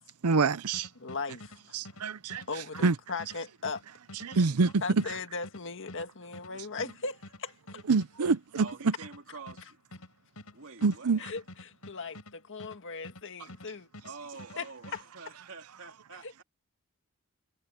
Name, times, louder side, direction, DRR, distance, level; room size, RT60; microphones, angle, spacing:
voice 1, 0.2-0.9 1.7-2.9 4.1-5.0 7.9-8.9 10.8-11.3, right 4 dB, 85° right, 0.7 m, -26 dB
sound 1, 0.7-13.7 13.9-15.0, left 1 dB, 75° left, 4.8 m, -49 dB
voice 2, 1.0-1.8 2.5-3.8 4.8-7.5 11.2-13.9 14.6-14.7, left 4 dB, 60° left, 1.9 m, -38 dB
voice 3, 8.6-9.8 10.5-11.2 14.0-16.4, right 4 dB, 65° right, 2.9 m, -46 dB
head